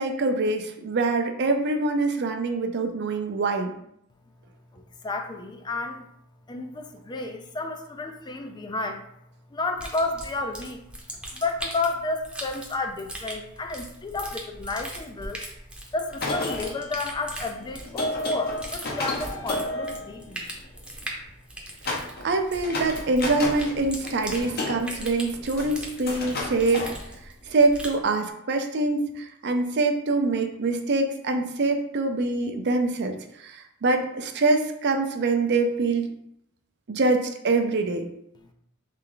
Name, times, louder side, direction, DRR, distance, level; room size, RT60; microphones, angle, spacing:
voice 1, 0.0-3.7 21.9-26.9 27.5-36.1 36.9-38.0, right 3 dB, 55° right, 5 dB, 0.5 m, -24 dB
voice 2, 4.7-6.1 6.5-9.0 9.5-10.8 11.3-15.4 15.9-20.5, left 3 dB, 20° left, 5 dB, 0.3 m, -31 dB
sound 1, 9.8-28.0, right 1 dB, 5° right, 0.7 m, -40 dB
sound 2, 16.1-20.8 21.9-22.3 22.6-23.8 24.0-27.6, left 2 dB, 50° left, 0.8 m, -32 dB
3.5 x 3.3 x 3.8 m, 0.76 s
head